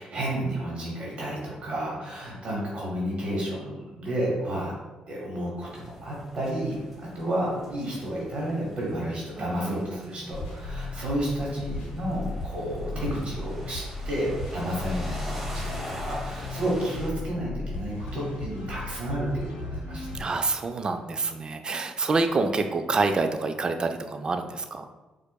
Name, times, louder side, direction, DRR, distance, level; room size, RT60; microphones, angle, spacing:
voice 1, 0.0-4.7 5.1-20.3, right 1 dB, 50° right, -4 dB, 1.0 m, -31 dB
sound 1, 5.6-17.1, equal, 5° right, 1.0 m, -43 dB
voice 2, 9.4-10.7 20.1-24.9, right 3 dB, 35° right, 7 dB, 0.3 m, -28 dB
sound 2, 10.3-20.2, left 3 dB, 90° left, 0.6 m, -36 dB
4.4 x 2.4 x 2.2 m, 1.2 s
cardioid pair, 75°, 2 cm